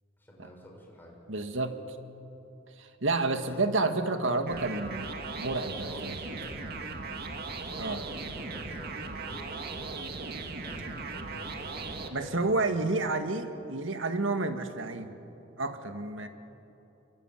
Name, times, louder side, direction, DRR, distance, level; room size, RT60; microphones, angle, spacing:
voice 1, 0.2-1.2 3.4-3.6 5.8-7.1 7.6-12.9, equal, 10° left, -1 dB, 6.1 m, -49 dB
voice 2, 1.3-1.8 2.8-6.2 7.8-8.1 12.1-15.1 15.6-16.3, right 3 dB, 80° right, 7 dB, 1.9 m, -30 dB
sound 1, 4.5-12.1, right 3 dB, 55° right, 2.1 m, -38 dB
26.0 x 25.0 x 9.2 m, 3.0 s
head